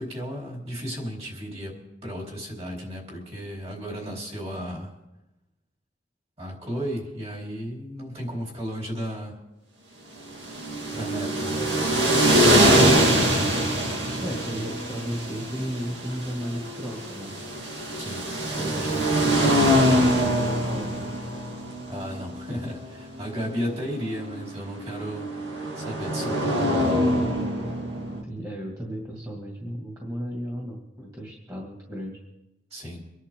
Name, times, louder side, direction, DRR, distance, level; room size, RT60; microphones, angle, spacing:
voice 1, 0.0-4.9 6.4-9.4 10.9-11.6 18.0-18.2 21.9-25.3 25.7-26.8 32.7-33.0, equal, 35° right, -2 dB, 4.3 m, -34 dB
sound 1, 10.3-28.2, equal, 75° right, 2.2 m, -24 dB
voice 2, 11.5-11.9 14.2-17.3 18.6-20.9 28.2-32.2, equal, 20° right, -3 dB, 2.4 m, -35 dB
25.0 x 11.0 x 3.9 m, 0.97 s
head